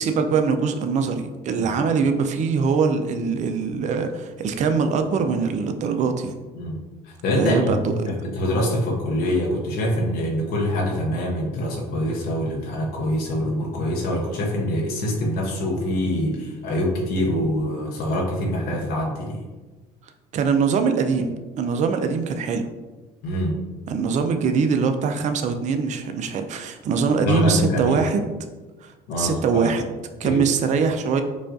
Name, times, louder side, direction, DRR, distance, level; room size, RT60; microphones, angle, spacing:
voice 1, 0.0-6.4 7.3-8.1 20.3-22.7 23.9-28.3 28.8-29.8 30.2-31.2, right 5 dB, 45° right, 7 dB, 0.4 m, -23 dB
voice 2, 7.0-7.7 8.0-19.4 23.2-23.6 27.2-28.0 29.1-29.7 30.2-30.4, left 1 dB, 70° left, -1 dB, 0.7 m, -25 dB
4.9 x 2.4 x 2.5 m, 1.2 s
supercardioid pair, 95°, 17 cm